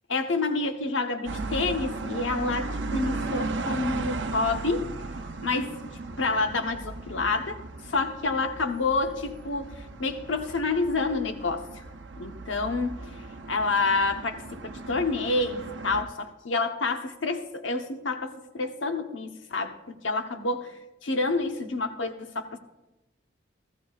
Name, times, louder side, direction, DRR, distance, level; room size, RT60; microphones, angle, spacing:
voice 1, 0.1-4.9 5.4-5.8 6.2-7.6 7.8-11.8 12.2-13.2 13.5-20.7 21.0-22.6, left 3 dB, 80° left, 5 dB, 1.1 m, -28 dB
sound 1, 1.3-16.0, right 3 dB, 70° right, 0.8 m, -36 dB
17.0 x 14.5 x 2.5 m, 1.0 s
head